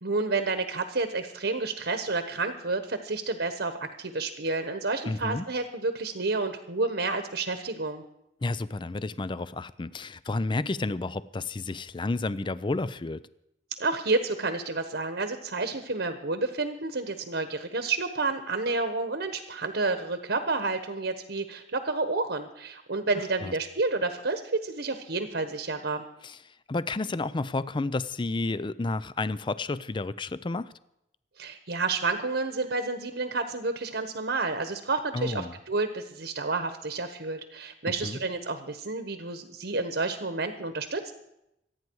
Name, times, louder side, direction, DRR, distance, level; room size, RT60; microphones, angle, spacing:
voice 1, 0.0-8.0 13.8-26.0 31.4-41.1, right 3 dB, 70° right, 7 dB, 1.2 m, -30 dB
voice 2, 5.1-5.4 8.4-13.2 23.4-23.5 26.2-26.4 26.7-30.7 35.1-35.5 38.0-38.2, left 2 dB, 25° left, 16 dB, 0.5 m, -31 dB
26.0 x 9.6 x 4.7 m, 0.83 s
head